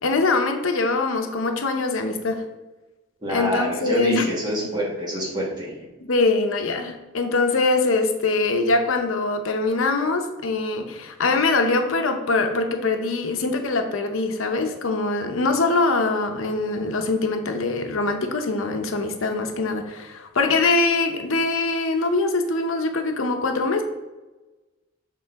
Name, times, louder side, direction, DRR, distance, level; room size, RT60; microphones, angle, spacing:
voice 1, 0.0-2.4 3.3-4.3 6.0-23.8, left 3 dB, 85° left, 6 dB, 0.7 m, -23 dB
voice 2, 3.2-5.9, equal, 20° right, -2 dB, 1.3 m, -26 dB
6.6 x 3.8 x 4.6 m, 1.1 s
head